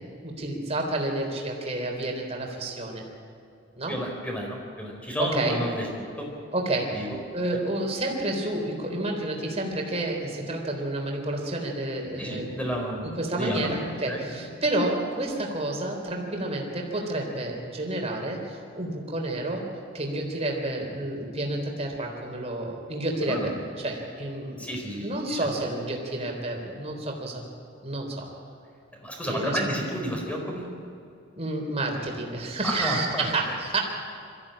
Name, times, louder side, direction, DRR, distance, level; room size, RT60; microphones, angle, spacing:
voice 1, 0.0-3.0 3.8-3.9 5.2-5.6 6.5-7.1 7.3-12.5 13.2-19.6 19.9-24.6 25.0-27.4 27.8-28.3 29.2-29.6 31.4-33.8, right 2 dB, 30° right, 1 dB, 3.7 m, -30 dB
voice 2, 3.9-5.9 6.2-6.3 6.9-7.2 7.5-7.6 12.2-13.8 14.1-14.4 23.2-23.5 24.6-25.5 29.0-30.7 32.6-33.3, equal, 5° left, 0 dB, 4.3 m, -31 dB
23.0 x 15.0 x 8.8 m, 2.5 s
head